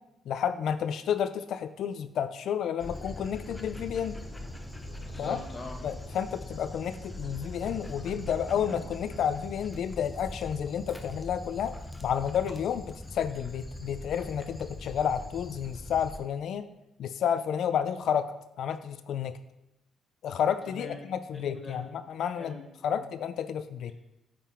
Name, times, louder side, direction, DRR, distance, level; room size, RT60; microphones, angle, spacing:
voice 1, 0.3-4.2 5.2-5.4 5.8-11.7 12.0-16.7 17.0-18.3 18.6-19.4 20.2-22.6 22.8-23.9, left 8 dB, 70° left, 11 dB, 0.3 m, -31 dB
Dog, 2.8-16.2, left 2 dB, 15° left, 0.6 m, -42 dB
sound 1, 4.2-9.3, right 7 dB, 65° right, 0.5 m, -48 dB
voice 2, 5.1-5.8 20.7-21.0 21.3-21.8 22.3-22.6 22.9-23.0, left 3 dB, 30° left, 1 dB, 1.6 m, -42 dB
8.5 x 3.8 x 3.5 m, 0.91 s
cardioid pair, 90°, 0 cm